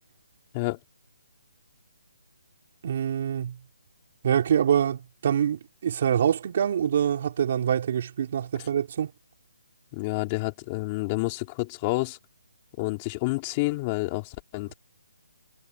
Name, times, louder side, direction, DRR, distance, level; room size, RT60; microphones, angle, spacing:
voice 1, 2.8-3.6 4.2-9.1, right 8 dB, 40° right, 4.6 m, -25 dB
voice 2, 9.9-12.2 12.8-14.7, left 23 dB, 20° left, 4.3 m, -29 dB
hypercardioid pair, 170°, 0 cm